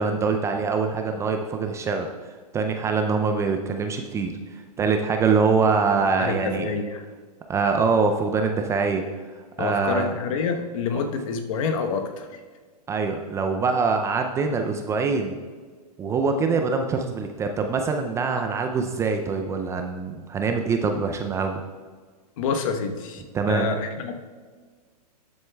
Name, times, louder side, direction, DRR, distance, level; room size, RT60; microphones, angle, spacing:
voice 1, 0.0-2.1 2.5-4.3 4.8-6.7 7.5-9.0 9.6-10.1 12.9-15.4 16.0-21.6 23.3-23.7, right 4 dB, 15° right, 5 dB, 0.4 m, -24 dB
voice 2, 6.2-7.0 9.6-12.3 22.4-23.2 23.5-24.1, left 5 dB, 55° left, 6 dB, 1.1 m, -27 dB
12.5 x 7.8 x 2.3 m, 1.5 s
hypercardioid pair, 135°, 21 cm